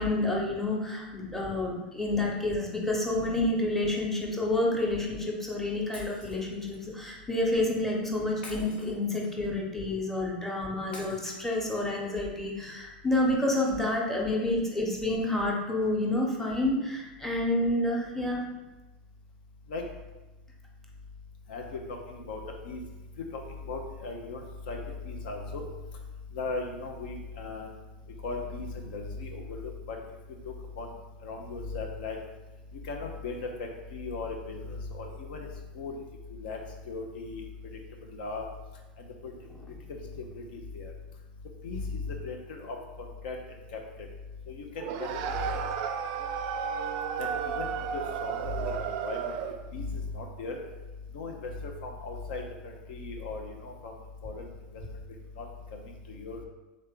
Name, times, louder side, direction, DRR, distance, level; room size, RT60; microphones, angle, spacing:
voice 1, 0.0-18.4, left 1 dB, 5° left, -2 dB, 1.0 m, -29 dB
Shatter, 5.9-6.8 8.4-9.5 10.9-11.9, left 2 dB, 80° left, 1.0 m, -48 dB
voice 2, 21.5-22.4 22.7-22.8 23.3-24.8 25.1-25.6 26.3-27.7 28.2-30.0 30.4-30.9 31.2-32.2 32.9-35.5 35.7-36.0 36.4-36.6 36.9-37.8 38.1-38.4 39.2-39.3 39.9-40.9 41.6-43.4 44.5-45.5 47.2-49.3 49.7-50.6 51.1-53.9 54.2-54.4 55.4-55.5 55.7-55.8 56.1-56.4, left 3 dB, 65° left, 2 dB, 0.6 m, -37 dB
sound 1, 44.8-49.7, right 7 dB, 55° right, 0.4 m, -33 dB
3.7 x 3.2 x 3.7 m, 1.1 s
hypercardioid pair, 90°, 5 cm